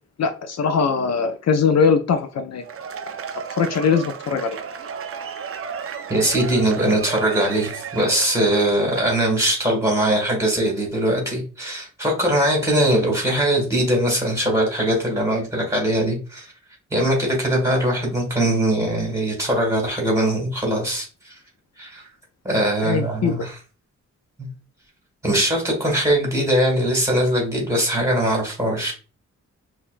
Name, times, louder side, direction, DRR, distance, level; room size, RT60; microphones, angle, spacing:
voice 1, 0.2-2.6 3.6-4.6 22.8-23.3, left 6 dB, 60° left, 8 dB, 0.4 m, -21 dB
Cheering / Applause / Crowd, 2.6-9.4, right 7 dB, 50° right, 0.4 m, -34 dB
voice 2, 6.1-16.5 16.9-21.3 21.8-22.1 22.4-23.6 24.4-24.5 25.2-28.9, right 1 dB, 10° right, -1 dB, 1.6 m, -21 dB
5.5 x 2.3 x 2.4 m, 0.34 s
wide cardioid pair, 160°, 30 cm